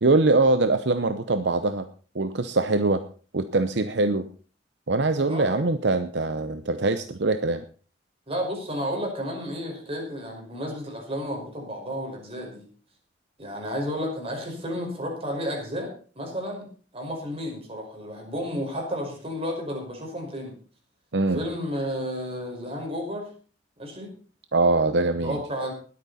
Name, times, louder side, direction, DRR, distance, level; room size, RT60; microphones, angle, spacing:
voice 1, 0.0-1.9 2.1-3.0 3.3-4.3 4.9-7.6 21.1-21.4 24.5-25.4, right 3 dB, 70° right, 10 dB, 0.8 m, -23 dB
voice 2, 5.2-5.7 8.3-12.7 13.4-16.7 16.9-20.6 21.3-23.3 23.8-24.1 25.1-25.7, equal, 35° right, 1 dB, 5.3 m, -32 dB
20.0 x 8.8 x 4.2 m, 0.40 s
head